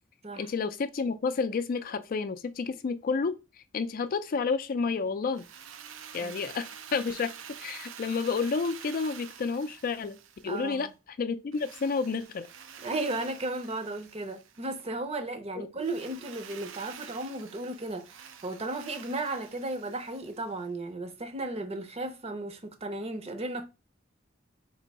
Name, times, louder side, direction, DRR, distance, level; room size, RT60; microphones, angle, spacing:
voice 1, 0.4-3.3 3.7-5.4 6.1-7.3 7.6-10.2 10.4-10.9 11.2-12.5 15.6-15.7, left 4 dB, 50° left, 0.4 m, -30 dB
Drill, 5.3-10.9 11.5-14.8 15.8-20.6, right 8 dB, 90° right, 0.5 m, -48 dB
voice 2, 10.5-10.9 12.8-23.6, right 2 dB, 35° right, 0.6 m, -35 dB
3.3 x 2.7 x 4.0 m
head